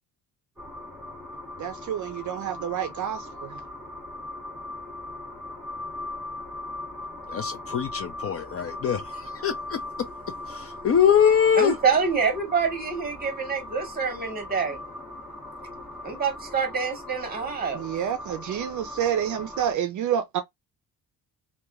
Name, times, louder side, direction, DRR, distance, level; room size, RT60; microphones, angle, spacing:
sound 1, 0.6-19.7, left 2 dB, ahead, 1.6 m, -39 dB
voice 1, 1.6-3.6 17.7-20.4, right 9 dB, 55° right, 0.5 m, -28 dB
voice 2, 7.3-9.8 10.5-11.7, left 8 dB, 40° left, 0.5 m, -23 dB
voice 3, 11.6-14.8 16.0-17.9, right 5 dB, 25° right, 1.4 m, -26 dB
2.9 x 2.3 x 2.3 m
cardioid pair, 125°, 36 cm